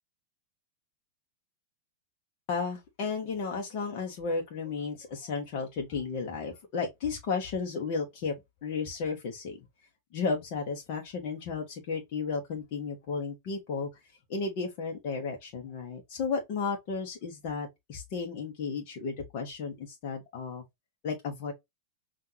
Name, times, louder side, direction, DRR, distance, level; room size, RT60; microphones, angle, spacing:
voice 1, 2.5-8.3 8.6-9.6 10.1-13.9 14.3-20.6 21.0-21.5, left 5 dB, 45° left, 1.0 m, -33 dB
5.6 x 2.5 x 2.8 m
figure-of-eight pair, 90°, 0 cm